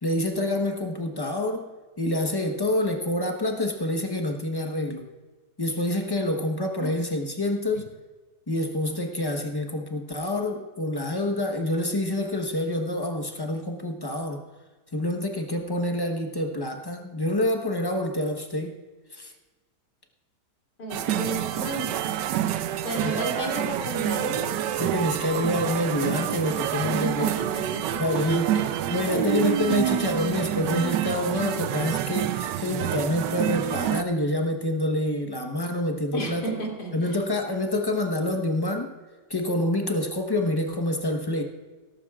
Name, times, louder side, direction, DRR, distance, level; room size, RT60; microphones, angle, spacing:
voice 1, 0.0-1.7 2.0-5.1 5.6-7.9 8.5-14.4 14.9-18.8 19.1-19.3 22.9-23.2 24.7-27.3 28.0-28.5 28.9-36.5 36.9-38.9 39.3-41.4, left 1 dB, 20° left, 3 dB, 0.8 m, -27 dB
voice 2, 20.8-22.1 22.8-24.6 26.8-28.7 29.1-29.4 30.8-30.9 36.1-36.9, right 2 dB, 70° left, -2 dB, 3.4 m, -32 dB
sound 1, 20.9-34.0, right 11 dB, 85° right, 1.2 m, -28 dB
17.0 x 14.0 x 2.4 m, 1.3 s
omnidirectional pair, 1.9 m